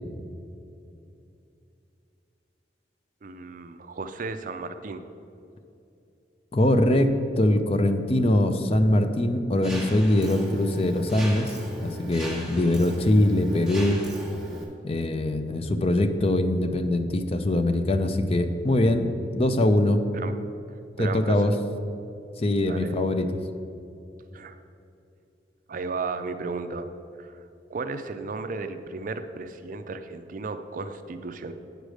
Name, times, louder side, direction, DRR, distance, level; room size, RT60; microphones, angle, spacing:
voice 1, 3.2-5.1 20.1-20.3 21.0-21.5 22.6-23.0 24.3-24.6 25.7-26.9 27.2-27.4 27.7-31.5, right 4 dB, 50° right, 9 dB, 0.4 m, -34 dB
voice 2, 6.5-7.1 7.4-11.5 11.8-14.0 14.8-20.0 21.0-21.5 22.4-23.3, left 1 dB, 35° left, 8 dB, 0.5 m, -22 dB
Mechanisms, 9.6-14.6, right 1 dB, 5° right, 1.3 m, -39 dB
9.1 x 4.9 x 6.3 m, 2.6 s
head